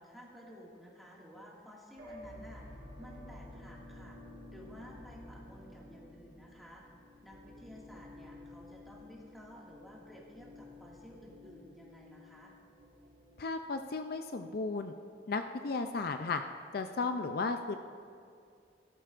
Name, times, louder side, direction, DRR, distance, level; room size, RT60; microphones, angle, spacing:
voice 1, 0.0-4.2 4.5-6.8 7.2-12.5, equal, ahead, -4 dB, 2.0 m, -53 dB
sound 1, 2.0-13.9, left 1 dB, 55° right, 1.9 m, -52 dB
voice 2, 13.4-14.9 15.3-16.4 16.7-17.8, left 4 dB, 55° left, 7 dB, 0.5 m, -34 dB
16.5 x 13.0 x 2.5 m, 2.3 s
head